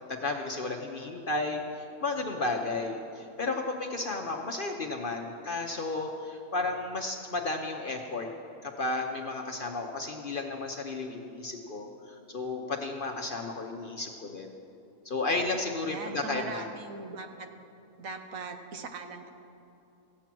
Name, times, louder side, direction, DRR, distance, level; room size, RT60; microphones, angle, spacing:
voice 1, 0.1-8.3 8.6-11.9 12.3-14.6 15.0-16.6, left 3 dB, 45° left, 2 dB, 0.8 m, -33 dB
voice 2, 15.7-17.5 18.0-19.3, right 4 dB, 65° right, 6 dB, 1.3 m, -40 dB
15.5 x 8.7 x 6.0 m, 2.8 s
omnidirectional pair, 1.6 m